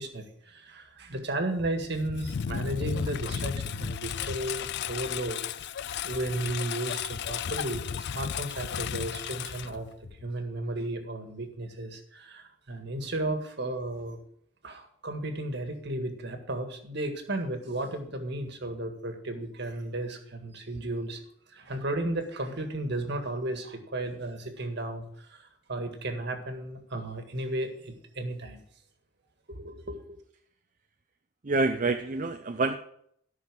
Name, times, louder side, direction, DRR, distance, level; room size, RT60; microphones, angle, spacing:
voice 1, 0.0-5.7 6.0-14.2 14.6-21.2 21.5-28.6 29.5-30.2, right 1 dB, 55° right, 6 dB, 1.8 m, -34 dB
Engine, 1.6-10.3, left 8 dB, 55° left, 0.4 m, -34 dB
voice 2, 31.4-32.7, right 3 dB, 40° right, 6 dB, 0.6 m, -27 dB
13.0 x 6.2 x 6.1 m, 0.67 s
head